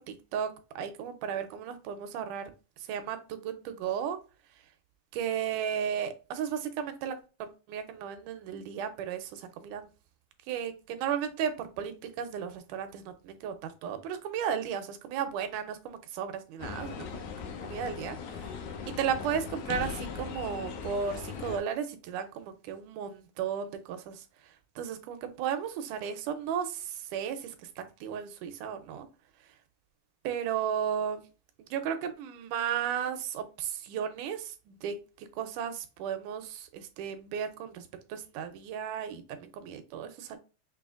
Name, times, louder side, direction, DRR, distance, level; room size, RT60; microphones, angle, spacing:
voice 1, 0.0-2.5 2.9-4.2 5.1-9.9 10.5-17.1 17.6-18.6 18.9-29.1 30.2-31.3 31.6-40.4, right 8 dB, 80° right, 9 dB, 2.0 m, -35 dB
sound 1, 16.6-21.6, left 6 dB, 75° left, 1.8 m, -39 dB
6.2 x 2.8 x 2.3 m, 0.31 s
omnidirectional pair, 3.7 m